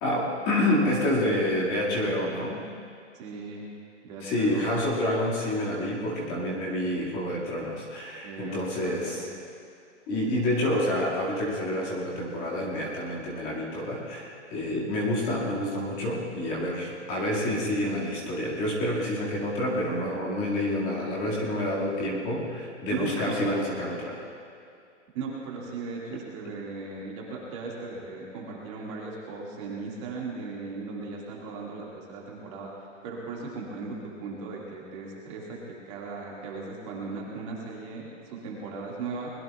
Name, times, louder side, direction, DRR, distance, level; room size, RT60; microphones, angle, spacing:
voice 1, 0.0-2.6 4.2-9.3 10.1-24.2, left 1 dB, 20° left, -5 dB, 2.0 m, -28 dB
voice 2, 3.1-3.7 4.0-4.7 8.2-9.3 22.9-23.5 25.1-35.6 35.9-39.3, right 4 dB, 25° right, -3 dB, 1.9 m, -37 dB
24.0 x 21.0 x 2.3 m, 2.5 s
hypercardioid pair, 170°, 38 cm